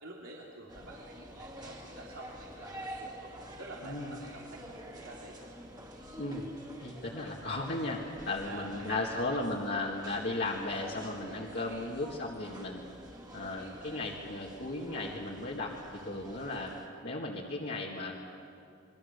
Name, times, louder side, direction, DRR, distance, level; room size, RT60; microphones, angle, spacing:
voice 1, 0.0-3.3 3.6-5.5 8.4-9.5, right 2 dB, 85° right, -3 dB, 3.1 m, -48 dB
sound 1, 0.7-16.9, equal, 20° right, 2.4 m, -48 dB
voice 2, 3.8-4.2 6.2-6.5 6.8-12.9 13.3-15.7 16.0-16.7 17.0-18.1, left 2 dB, 55° left, -4 dB, 2.0 m, -35 dB
28.0 x 22.5 x 6.7 m, 2.5 s
head